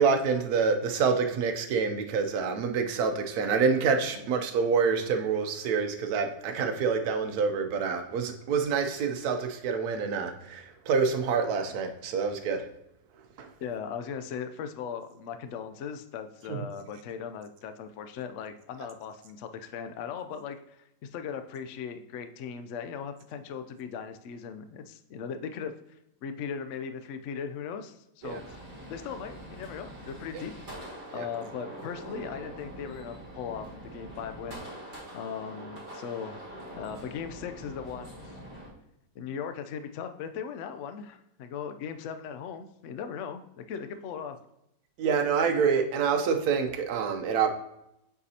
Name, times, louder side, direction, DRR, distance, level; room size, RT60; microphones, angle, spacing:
voice 1, 0.0-12.7 13.4-13.5 16.5-16.6 28.2-28.4 31.1-31.3 45.0-47.5, right 5 dB, 65° right, 6 dB, 1.1 m, -27 dB
voice 2, 13.6-25.7 26.2-30.5 31.1-36.4 36.7-38.4 39.1-44.4, left 7 dB, 75° left, 9 dB, 0.7 m, -38 dB
sound 1, 28.2-38.7, right 1 dB, 35° right, 2.3 m, -44 dB
8.0 x 5.0 x 2.8 m, 0.83 s
omnidirectional pair, 1.9 m